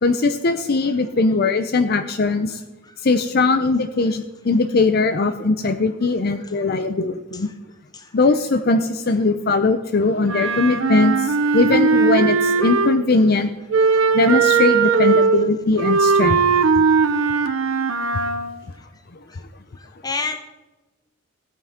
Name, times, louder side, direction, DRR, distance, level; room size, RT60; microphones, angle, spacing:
voice 1, 0.0-2.6 3.0-7.5 8.1-13.5 14.1-16.4 16.8-16.9, left 3 dB, 50° left, 9 dB, 0.5 m, -20 dB
Wind instrument woodwind instrument, 10.2-13.1 13.7-18.5, right 5 dB, 75° right, 0.8 m, -19 dB
voice 2, 19.8-20.4, left 4 dB, 20° left, 6 dB, 1.0 m, -28 dB
16.0 x 9.3 x 3.6 m, 1.1 s
head